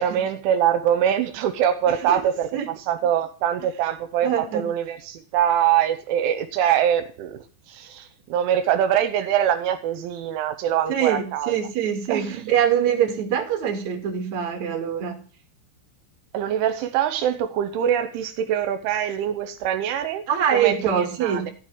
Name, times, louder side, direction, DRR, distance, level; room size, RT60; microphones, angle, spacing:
voice 1, 0.0-11.5 12.1-12.4 16.3-20.2 20.5-21.5, right 10 dB, 80° right, 3.3 m, -23 dB
voice 2, 4.2-4.6 10.9-15.2 20.3-21.5, right 9 dB, 45° right, 3.0 m, -24 dB
15.0 x 5.3 x 9.4 m
omnidirectional pair, 5.6 m